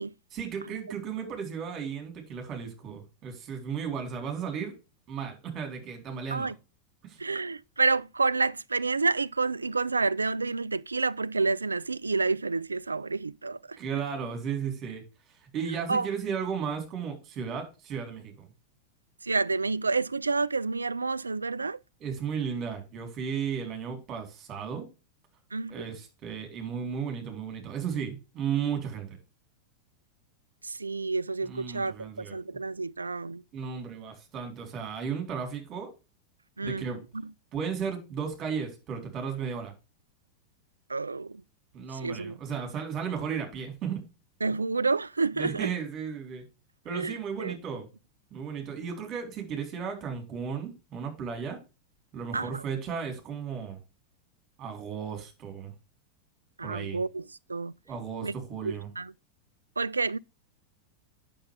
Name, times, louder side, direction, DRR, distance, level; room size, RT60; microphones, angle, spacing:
voice 1, 0.3-4.7 5.1-6.5 7.0-7.2 13.8-15.0 15.5-18.5 22.0-24.9 25.7-29.2 31.4-32.6 33.5-35.9 36.6-37.0 37.5-39.7 41.7-44.0 45.4-46.4 46.8-47.9 48.3-51.6 52.1-53.8 54.6-55.7 56.6-57.0 57.9-58.9, right 7 dB, 30° right, 3.7 m, -34 dB
voice 2, 7.2-13.8 15.9-16.1 19.2-21.8 25.5-25.7 30.6-33.4 36.6-36.8 40.9-41.4 42.0-42.4 44.4-45.7 46.9-47.5 52.3-52.6 56.6-57.2 57.5-57.7 58.2-58.3 58.6-59.1 59.8-60.2, right 4 dB, 80° right, 0.3 m, -29 dB
8.7 x 6.8 x 3.4 m
figure-of-eight pair, 90°, 0 cm